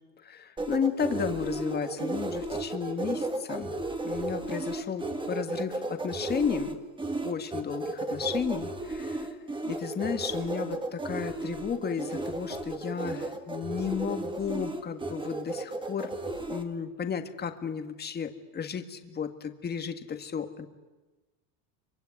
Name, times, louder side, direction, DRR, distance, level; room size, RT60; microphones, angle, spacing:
voice 1, 0.2-3.7 4.0-6.8 7.2-9.3 9.7-16.1 16.5-20.7, left 7 dB, 20° left, 8 dB, 1.7 m, -33 dB
sound 1, 0.6-16.6, right 2 dB, 10° right, 1.9 m, -34 dB
25.0 x 23.5 x 9.7 m, 1.2 s
supercardioid pair, 140°, 47 cm